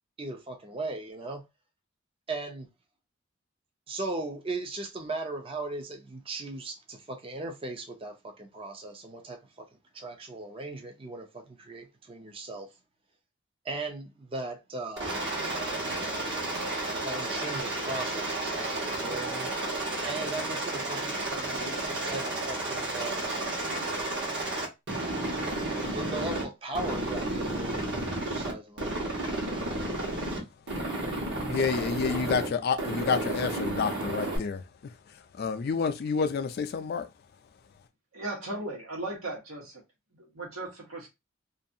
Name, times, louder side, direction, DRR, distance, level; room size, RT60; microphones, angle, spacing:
voice 1, 0.2-1.4 2.3-2.7 3.9-9.7 9.9-12.7 13.6-15.3 17.0-19.5 20.0-23.6 25.9-29.5 29.9-30.3, right 2 dB, 25° right, 0.5 m, -38 dB
Aircraft, 15.0-26.4 26.8-28.5 28.8-30.4 30.7-32.5 32.8-34.4, right 2 dB, 60° right, 1.1 m, -32 dB
voice 2, 31.5-34.6 35.4-37.1, left 5 dB, 50° left, 0.3 m, -29 dB
voice 3, 38.1-39.8 40.1-41.1, right 2 dB, 90° right, 1.3 m, -37 dB
2.6 x 2.3 x 2.6 m
head